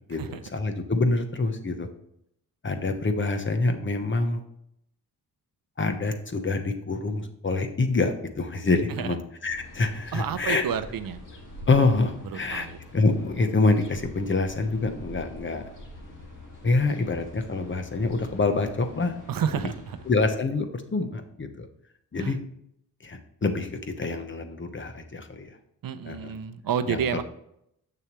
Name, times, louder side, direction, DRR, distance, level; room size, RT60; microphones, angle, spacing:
voice 1, 0.1-1.9 2.6-4.4 5.8-10.6 11.7-12.7 12.9-15.6 16.6-19.2 19.6-19.7 20.1-21.7 22.1-22.4 23.0-25.5 26.0-26.3 26.9-27.0, left 3 dB, 30° left, 7 dB, 1.0 m, -26 dB
sound 1, 9.5-20.3, left 1 dB, 55° left, 2.3 m, -45 dB
voice 2, 10.1-11.2 12.3-12.8 19.3-20.0 22.2-22.4 25.8-27.2, right 8 dB, 65° right, 12 dB, 0.7 m, -30 dB
7.0 x 6.7 x 3.1 m, 0.75 s
cardioid pair, 100°, 37 cm